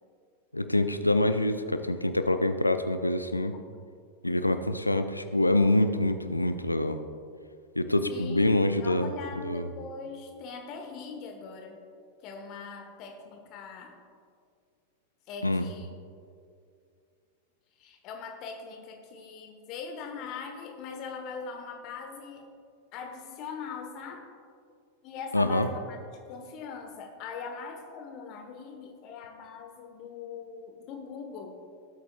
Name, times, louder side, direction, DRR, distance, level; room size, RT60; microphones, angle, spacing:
voice 1, 0.5-3.5 4.2-7.0 7.8-9.1 9.4-9.7 15.4-15.7 25.3-25.7, left 1 dB, 85° left, 10 dB, 0.5 m, -25 dB
voice 2, 8.1-11.8 12.2-14.0 15.3-15.9 17.8-22.5 22.9-24.3 25.0-31.6, left 5 dB, 40° left, 4 dB, 1.0 m, -41 dB
17.5 x 8.4 x 2.3 m, 2.3 s
figure-of-eight pair, 90°, 0 cm